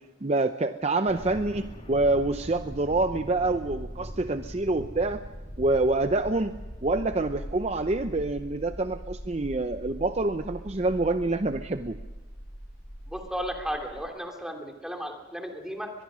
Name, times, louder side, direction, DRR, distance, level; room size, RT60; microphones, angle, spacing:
voice 1, 0.2-5.2 5.6-6.5 6.8-12.0, right 2 dB, 35° right, 9 dB, 0.6 m, -26 dB
sound 1, 1.1-14.1, equal, 35° left, 3.0 m, -41 dB
voice 2, 13.1-15.9, equal, 5° right, 3 dB, 2.8 m, -34 dB
23.0 x 22.0 x 6.2 m, 1.2 s
head